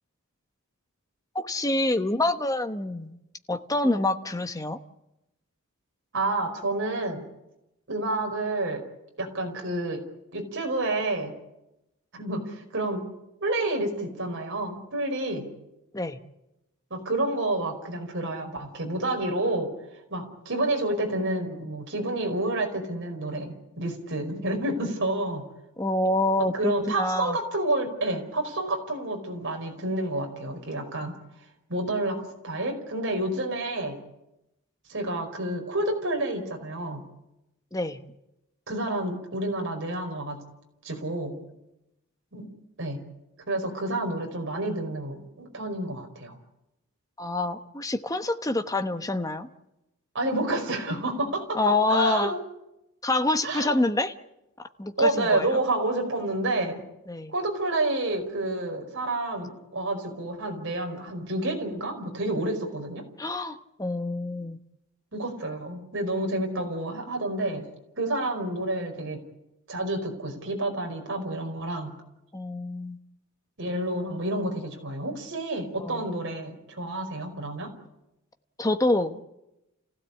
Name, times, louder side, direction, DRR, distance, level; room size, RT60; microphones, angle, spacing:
voice 1, 1.3-3.1 3.5-4.8 15.9-16.2 25.8-27.4 37.7-38.0 47.2-49.5 51.5-52.3 53.0-54.1 54.8-55.6 57.1-57.3 63.2-64.6 72.3-73.0 75.8-76.1 78.6-79.2, left 2 dB, 15° left, 8 dB, 1.1 m, -26 dB
voice 2, 6.1-7.2 7.9-8.8 9.2-10.0 10.3-11.3 12.1-13.0 13.4-15.5 16.9-19.7 20.1-25.5 26.5-31.1 31.7-34.0 34.9-37.0 38.7-40.4 40.8-41.4 42.3-42.5 42.8-43.0 43.5-46.4 50.1-52.4 53.4-53.7 55.0-56.8 57.3-63.0 65.1-67.7 68.0-69.2 69.7-72.0 73.6-77.7, right 2 dB, 55° right, 3 dB, 5.0 m, -29 dB
29.5 x 16.0 x 8.5 m, 0.91 s
head